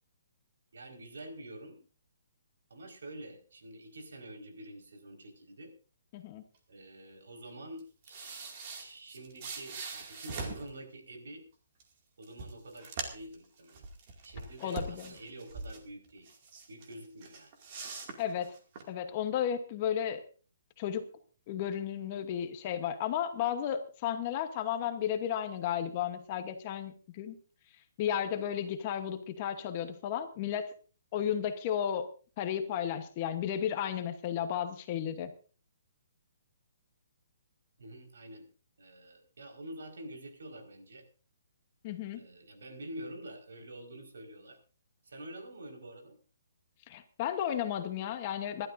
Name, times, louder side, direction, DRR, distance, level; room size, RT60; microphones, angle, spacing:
voice 1, 0.7-1.8 2.7-5.7 6.7-11.4 12.2-13.9 14.2-16.3 16.7-17.5 37.8-38.5 38.8-41.0 42.1-44.6 45.0-46.2, right 1 dB, 80° right, 3 dB, 4.8 m, -47 dB
voice 2, 6.1-6.4 14.6-15.1 18.2-18.5 18.9-20.2 20.8-21.1 21.5-27.4 28.0-30.7 31.1-32.1 32.4-35.3 41.8-42.2 46.9-48.7, left 9 dB, 25° left, 8 dB, 1.1 m, -33 dB
sound 1, 7.8-10.7 11.8-11.9 12.2-13.3 13.7-15.8 16.2-16.9 17.2-18.8, right 4 dB, 30° right, 2.3 m, -42 dB
26.5 x 12.0 x 2.6 m, 0.37 s
hypercardioid pair, 175°, 0 cm